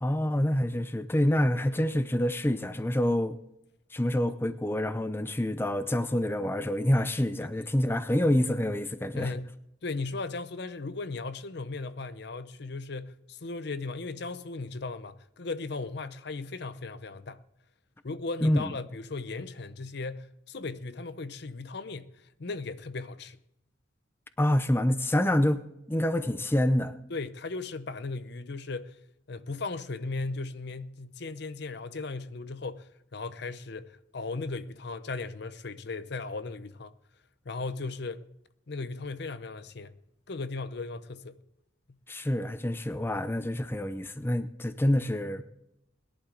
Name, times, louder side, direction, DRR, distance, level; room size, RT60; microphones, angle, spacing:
voice 1, 0.0-3.4 3.9-9.3 18.4-18.7 24.4-25.6 25.9-26.9 42.1-45.4, left 1 dB, 10° left, 0.5 m, -27 dB
voice 2, 9.1-9.5 9.8-17.4 18.0-23.4 27.1-29.0 29.3-36.9 37.4-38.3 38.7-39.9 40.3-41.4, left 3 dB, 60° left, 0.7 m, -37 dB
20.5 x 11.5 x 3.9 m
head